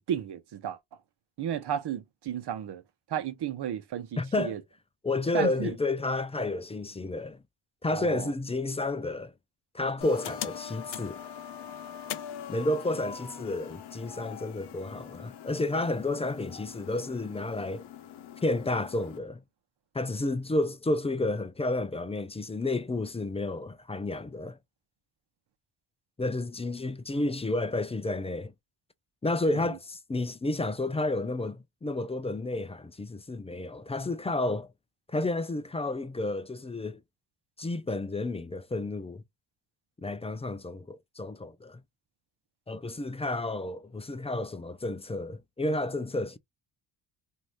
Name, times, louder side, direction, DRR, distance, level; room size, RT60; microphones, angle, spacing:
voice 1, 0.1-0.8 1.4-2.8 3.1-4.6 5.3-5.7 7.9-8.3 29.6-29.8, right 9 dB, 55° right, 0.9 m, -33 dB
voice 2, 4.2-4.6 5.0-7.4 7.8-9.3 9.7-11.2 12.5-17.8 18.4-19.4 19.9-24.6 26.2-28.5 29.2-34.7 35.1-37.0 37.6-39.2 40.0-41.8 42.7-46.4, left 2 dB, 15° left, 0.4 m, -31 dB
sound 1, 10.0-19.2, left 9 dB, 60° left, 0.8 m, -42 dB
3.0 x 2.7 x 2.4 m
cardioid pair, 70°, 47 cm